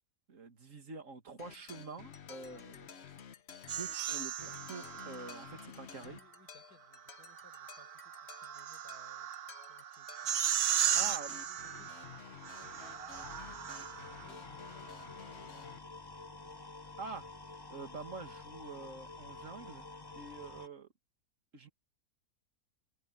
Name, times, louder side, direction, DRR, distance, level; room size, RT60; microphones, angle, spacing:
voice 1, 0.3-2.9 3.7-6.2 10.9-11.4 17.0-17.3 17.7-19.9 20.2-20.9 21.5-21.7, right 4 dB, 55° right, 2.6 m, -46 dB
sound 1, 1.4-15.8, left 7 dB, 50° left, 1.1 m, -53 dB
sound 2, 3.7-5.6 7.1-14.3, right 9 dB, 75° right, 1.4 m, -36 dB
voice 2, 6.0-9.3 9.6-15.9, left 3 dB, 80° left, 6.4 m, -64 dB
sound 3, 10.8-20.7, left 3 dB, 20° left, 1.0 m, -50 dB
omnidirectional pair, 1.6 m